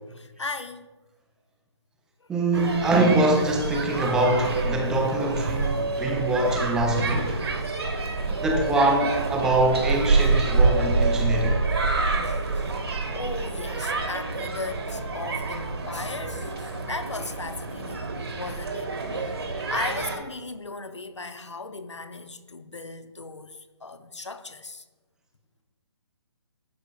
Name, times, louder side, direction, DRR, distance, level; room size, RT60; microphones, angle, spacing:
voice 1, 0.1-0.8 2.2-2.3 12.2-12.7 13.1-24.8, left 3 dB, 85° left, 0.6 m, -37 dB
voice 2, 2.3-7.4 8.3-11.6, right 2 dB, 5° right, 0.3 m, -24 dB
sound 1, 2.5-20.2, right 3 dB, 65° right, 1.3 m, -27 dB
12.0 x 4.8 x 2.2 m
figure-of-eight pair, 140°, 15 cm